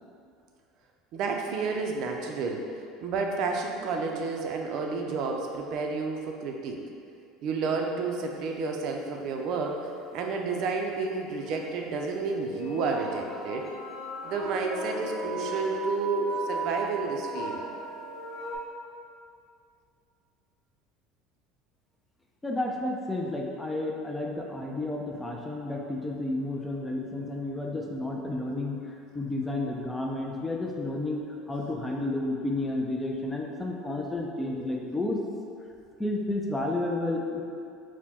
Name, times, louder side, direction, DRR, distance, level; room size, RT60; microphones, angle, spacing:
voice 1, 1.1-2.7 3.0-6.8 7.4-13.7 14.2-17.6, right 4 dB, 60° right, 2 dB, 0.5 m, -31 dB
sound 1, 11.5-11.6 12.2-18.6, right 2 dB, 45° left, 1.2 m, -36 dB
voice 2, 22.4-35.2 36.0-37.4, left 2 dB, 10° left, 0 dB, 0.4 m, -31 dB
4.3 x 2.1 x 4.2 m, 2.4 s
supercardioid pair, 115°, 0 cm